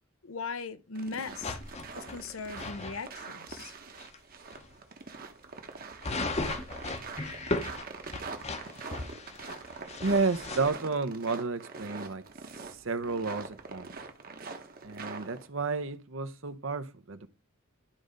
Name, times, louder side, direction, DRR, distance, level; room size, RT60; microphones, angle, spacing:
voice 1, 0.2-1.6 1.9-3.7, left 4 dB, 75° left, 0.8 m, -39 dB
footsteps snow crunchy close metallic clink, 0.9-15.5, right 4 dB, 45° right, 1.1 m, -44 dB
sound 1, 1.4-2.9 3.5-3.6 4.0-4.2 4.5-4.7 6.0-10.7, left 2 dB, 30° left, 0.8 m, -36 dB
voice 2, 10.0-12.2 12.8-13.9 14.8-17.3, right 4 dB, 65° right, 0.8 m, -31 dB
11.5 x 3.9 x 5.1 m
head